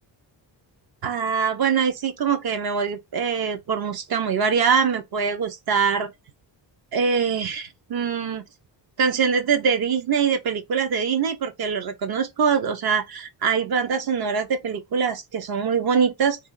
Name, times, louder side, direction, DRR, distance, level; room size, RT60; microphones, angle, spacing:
voice 1, 1.0-6.1 6.9-8.4 9.0-16.4, right 6 dB, 55° right, 0.9 m, -23 dB
2.7 x 2.5 x 3.7 m
wide cardioid pair, 140°, 44 cm